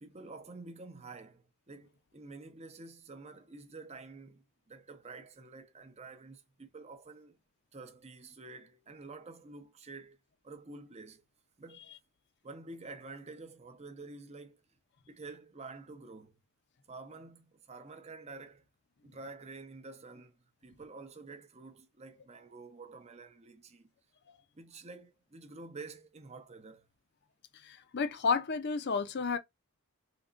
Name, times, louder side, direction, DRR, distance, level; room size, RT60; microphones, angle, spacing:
voice 1, 0.0-7.4 7.7-10.2 10.4-11.2 11.6-11.9 12.4-14.6 15.1-16.4 16.9-18.6 19.0-23.9 24.5-26.9, right 3 dB, 30° right, 0.7 m, -49 dB
voice 2, 27.6-29.4, left 5 dB, 50° left, 0.5 m, -31 dB
3.7 x 2.8 x 2.4 m
head